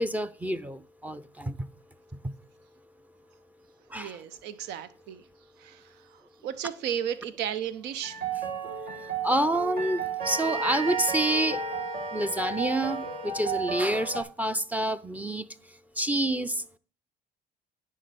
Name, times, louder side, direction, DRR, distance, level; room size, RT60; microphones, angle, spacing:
voice 1, 0.0-1.6 3.9-4.2 9.2-11.6 12.1-15.5 16.0-16.6, right 1 dB, 10° right, 0.5 m, -28 dB
voice 2, 3.9-5.3 5.6-8.2, right 9 dB, 85° right, 0.8 m, -35 dB
sound 1, 8.0-14.2, right 6 dB, 65° right, 3.0 m, -34 dB
sound 2, 10.2-13.9, right 2 dB, 50° right, 3.8 m, -37 dB
9.8 x 3.8 x 6.8 m
cardioid pair, 110°, 17 cm